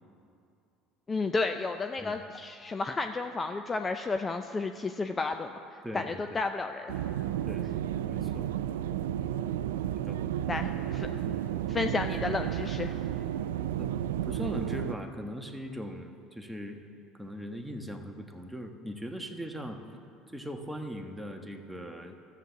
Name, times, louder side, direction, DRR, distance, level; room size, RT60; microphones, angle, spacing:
voice 1, 1.1-5.5 5.9-6.9 10.5-11.1 11.7-12.9, left 3 dB, 25° left, 7 dB, 0.5 m, -32 dB
voice 2, 5.8-6.4 7.5-7.7 8.1-8.5 10.0-10.6 11.1-11.4 13.8-13.9 14.2-16.8 17.2-19.8 20.3-22.1, equal, 5° right, 3 dB, 1.3 m, -40 dB
sound 1, 6.9-14.9, right 11 dB, 85° right, 0.4 m, -32 dB
13.0 x 7.7 x 7.0 m, 2.6 s
hypercardioid pair, 70°, 0 cm